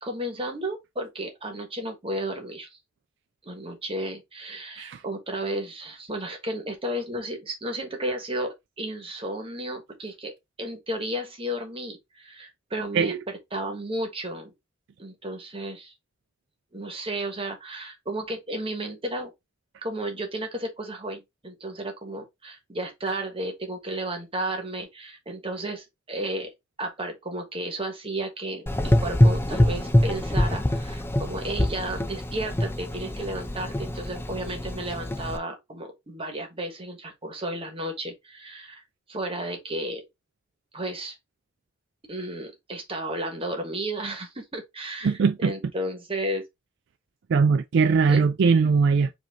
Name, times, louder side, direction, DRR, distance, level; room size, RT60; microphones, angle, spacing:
voice 1, 0.0-2.8 3.4-10.3 10.6-13.1 13.5-14.5 15.0-15.9 16.7-19.3 19.8-26.5 26.8-38.8 39.1-40.0 40.7-41.1 42.1-46.4 48.1-48.2, right 1 dB, 30° right, 1.3 m, -33 dB
Gurgling / Engine, 28.7-35.4, left 1 dB, 10° left, 0.5 m, -24 dB
voice 2, 45.0-45.5 47.3-49.2, right 5 dB, 65° right, 0.4 m, -20 dB
5.1 x 2.8 x 3.5 m
head